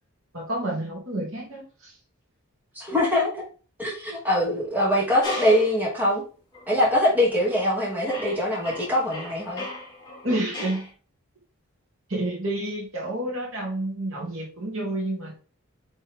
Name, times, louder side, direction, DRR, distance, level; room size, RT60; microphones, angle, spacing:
voice 1, 0.3-2.0 10.2-10.9 12.1-15.4, right 1 dB, 65° right, -2 dB, 2.9 m, -29 dB
voice 2, 2.7-3.4 3.8-6.2 6.7-9.6, left 1 dB, 10° right, -4 dB, 2.8 m, -23 dB
sound 1, 5.2-5.8 6.5-6.7 7.3-7.7 8.0-10.9, left 2 dB, 20° left, 2.7 m, -36 dB
8.5 x 4.5 x 3.8 m, 0.36 s
head